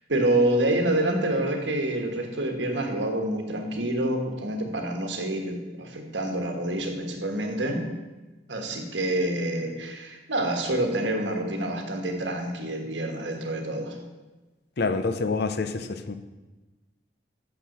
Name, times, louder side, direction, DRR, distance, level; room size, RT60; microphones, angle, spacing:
voice 1, 0.1-7.9 8.5-14.0, right 1 dB, 85° right, 3 dB, 1.4 m, -27 dB
voice 2, 14.8-16.1, left 4 dB, 60° left, 9 dB, 0.6 m, -27 dB
6.1 x 5.9 x 7.2 m, 1.2 s
head